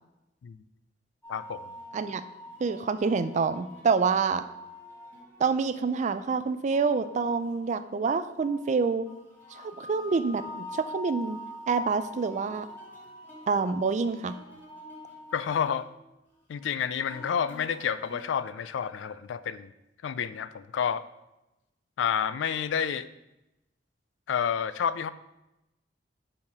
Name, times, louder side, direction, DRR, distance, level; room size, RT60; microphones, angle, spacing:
sound 1, 1.2-18.3, equal, 10° left, 1.6 m, -46 dB
voice 1, 1.3-1.7 15.3-15.9 16.5-19.7 20.0-21.0 22.0-23.1 24.3-25.1, left 7 dB, 80° left, 14 dB, 0.3 m, -29 dB
voice 2, 2.6-4.4 5.4-9.1 9.5-11.4 11.7-12.7 13.5-14.4, right 5 dB, 40° right, 12 dB, 0.3 m, -27 dB
5.5 x 4.5 x 4.9 m, 0.94 s
head